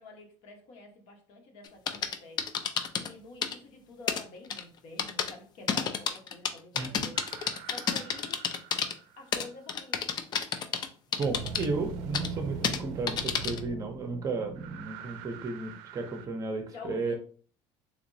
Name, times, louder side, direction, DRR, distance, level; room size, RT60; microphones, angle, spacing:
voice 1, 0.0-8.4 9.2-10.1 11.1-11.8 16.7-17.2, left 3 dB, 60° left, 2 dB, 1.1 m, -48 dB
sound 1, 1.6-3.1 3.4-3.5 4.1-4.2 4.5-4.6 5.0-5.3 5.7-8.9 9.3-10.9 11.1-11.7 12.1-12.3 12.6-12.8 13.1-13.6, left 7 dB, 35° left, 0.4 m, -30 dB
sound 2, 7.1-9.4 11.2-16.3, right 5 dB, 85° right, 0.4 m, -42 dB
voice 2, 11.2-17.2, right 3 dB, 30° right, 5 dB, 0.6 m, -33 dB
3.4 x 2.9 x 2.7 m, 0.43 s
cardioid pair, 135°, 12 cm